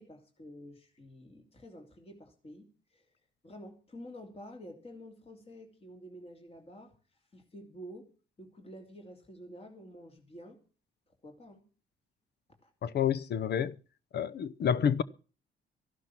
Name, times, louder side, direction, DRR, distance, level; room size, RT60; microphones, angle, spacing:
voice 1, 0.0-3.1 3.4-6.9 7.3-8.1 8.4-10.6 11.2-11.7 12.6-12.7, equal, 30° left, 2.8 m, -49 dB
voice 2, 12.8-13.8 14.1-15.0, left 8 dB, 55° left, 0.8 m, -29 dB
14.0 x 11.5 x 6.0 m
cardioid pair, 90°, 20 cm